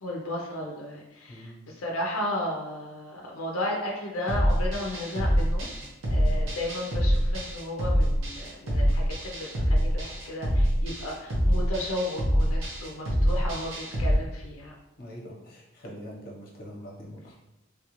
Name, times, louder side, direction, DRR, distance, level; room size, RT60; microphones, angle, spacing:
voice 1, 0.0-5.7 6.1-14.7, left 1 dB, 80° left, -1 dB, 0.5 m, -34 dB
voice 2, 1.3-1.6 6.1-6.4 15.0-17.4, equal, 45° left, -2 dB, 0.8 m, -43 dB
sound 1, 4.3-14.1, equal, 65° right, 0.8 m, -25 dB
3.3 x 2.4 x 3.0 m, 0.94 s
head